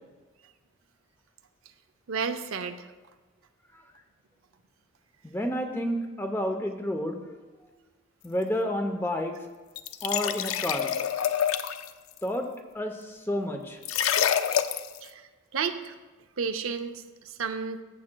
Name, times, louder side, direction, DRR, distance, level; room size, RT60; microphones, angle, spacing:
voice 1, 2.1-2.9 14.3-14.4 15.0-15.2 15.5-16.0 16.4-17.8, right 6 dB, 80° right, 8 dB, 0.6 m, -32 dB
voice 2, 5.2-7.2 8.2-9.4 10.0-10.9 12.2-12.5 12.7-13.8, equal, 10° left, 5 dB, 0.6 m, -30 dB
sound 1, 9.8-11.9 13.8-15.0, left 9 dB, 80° left, 0.4 m, -27 dB
14.5 x 7.5 x 2.2 m, 1.2 s
head